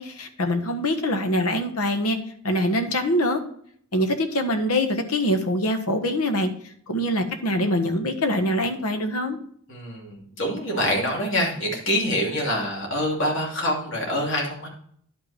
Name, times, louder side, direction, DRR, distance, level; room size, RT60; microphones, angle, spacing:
voice 1, 0.0-2.2 2.4-3.4 3.9-6.5 6.9-9.4, left 1 dB, 80° left, 7 dB, 1.4 m, -24 dB
voice 2, 9.7-14.7, equal, 55° left, -1 dB, 2.8 m, -25 dB
10.5 x 5.7 x 4.3 m, 0.62 s
head